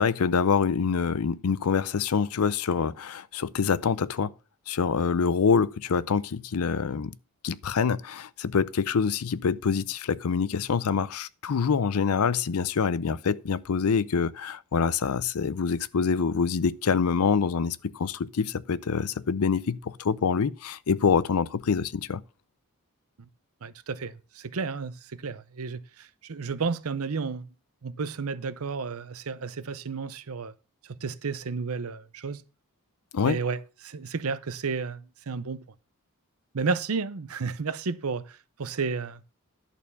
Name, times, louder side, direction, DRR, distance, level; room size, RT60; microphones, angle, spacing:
voice 1, 0.0-4.3 4.7-7.1 7.4-22.2 33.1-33.4, left 5 dB, 80° left, 0.5 m, -26 dB
voice 2, 23.6-27.5 27.8-30.5 30.8-32.4 33.2-35.6 36.5-39.2, right 4 dB, 70° right, 0.7 m, -32 dB
11.0 x 4.3 x 7.0 m
head